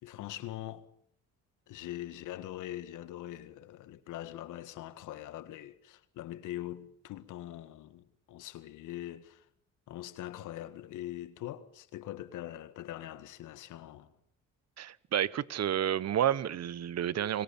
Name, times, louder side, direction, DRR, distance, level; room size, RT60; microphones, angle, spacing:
voice 1, 0.0-0.9 1.7-9.4 9.9-14.1, left 13 dB, 85° left, 1.8 m, -42 dB
voice 2, 14.8-17.4, right 10 dB, 60° right, 1.1 m, -30 dB
27.5 x 23.0 x 7.2 m
cardioid pair, 90°, 30 cm